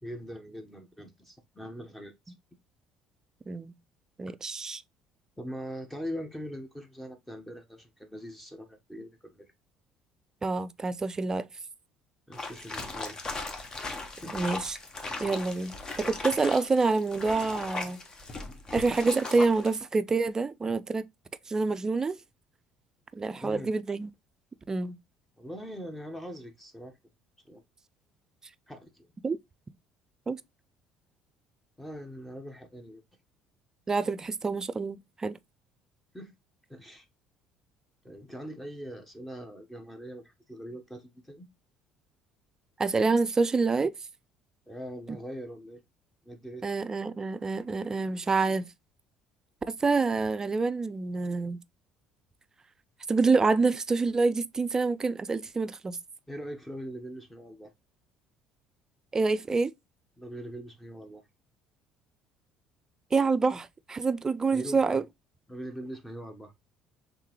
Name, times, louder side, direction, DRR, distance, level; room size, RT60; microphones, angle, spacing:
voice 1, 0.0-2.3 5.4-9.5 12.3-13.3 14.2-14.4 23.4-23.7 25.4-27.0 27.4-27.6 28.7-29.1 31.8-33.0 36.1-36.3 36.7-37.1 38.0-41.5 44.7-45.8 46.2-46.7 56.3-57.7 60.2-61.2 64.5-65.0 65.5-66.5, equal, 10° left, 1.0 m, -42 dB
voice 2, 4.2-4.8 10.4-11.5 14.3-14.8 15.2-18.0 18.7-21.1 21.5-22.2 23.1-24.1 24.7-25.0 29.2-29.4 30.3-30.4 33.9-35.4 42.8-43.9 45.1-45.2 46.6-48.7 49.8-51.6 53.1-56.0 59.1-59.7 63.1-65.0, right 4 dB, 25° right, 0.4 m, -27 dB
sound 1, 12.3-19.8, left 3 dB, 35° left, 1.1 m, -38 dB
3.7 x 3.3 x 3.0 m
hypercardioid pair, 70°, 2 cm